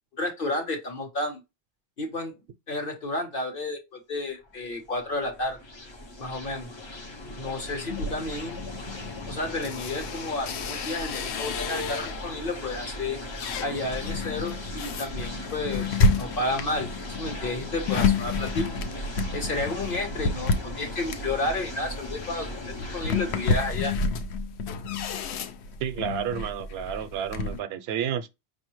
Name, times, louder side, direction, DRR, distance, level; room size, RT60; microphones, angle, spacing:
voice 1, 0.1-1.4 2.0-2.4 2.7-5.6 6.2-6.7 7.4-8.6 9.3-13.2 13.6-16.9 17.2-18.8 19.3-23.9, left 2 dB, 50° left, 1.2 m, -31 dB
sound 1, 4.4-23.5, left 1 dB, 30° left, 0.5 m, -38 dB
sound 2, 7.9-12.4 12.9-27.6, left 4 dB, 70° left, 0.8 m, -30 dB
voice 2, 25.8-28.3, right 9 dB, 65° right, 0.8 m, -31 dB
5.3 x 2.7 x 3.0 m
omnidirectional pair, 1.2 m